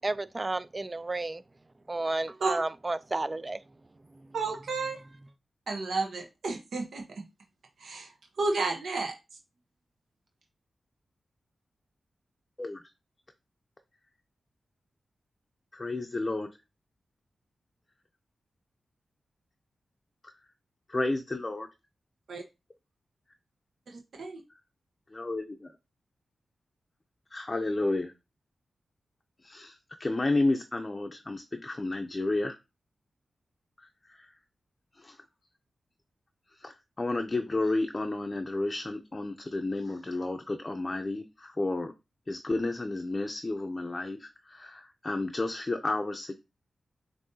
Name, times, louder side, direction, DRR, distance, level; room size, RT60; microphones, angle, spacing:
voice 1, 0.0-1.4 1.9-3.6, right 2 dB, 30° right, 0.3 m, -32 dB
voice 2, 4.3-5.0 5.7-7.2 7.8-9.1 22.3-22.4 23.9-24.4, right 3 dB, 80° right, 0.9 m, -32 dB
voice 3, 15.7-16.5 20.9-21.7 25.1-25.4 27.3-28.1 29.4-32.6 33.8-34.4 34.9-35.2 36.5-41.9 42.3-46.3, left 2 dB, 30° left, 0.5 m, -31 dB
7.2 x 2.7 x 2.7 m
cardioid pair, 70°, 0 cm